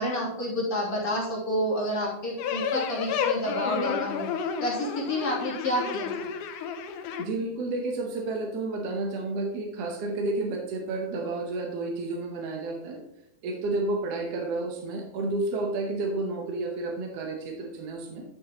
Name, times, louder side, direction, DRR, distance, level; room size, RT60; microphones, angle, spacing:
voice 1, 0.0-4.3 4.6-6.3, left 1 dB, 30° left, -6 dB, 3.2 m, -29 dB
sound 1, 2.4-7.2, left 7 dB, 80° left, 2.2 m, -31 dB
voice 2, 7.2-13.0 13.4-18.2, right 2 dB, 65° right, 1 dB, 1.8 m, -31 dB
12.0 x 6.2 x 3.0 m, 0.81 s
omnidirectional pair, 3.6 m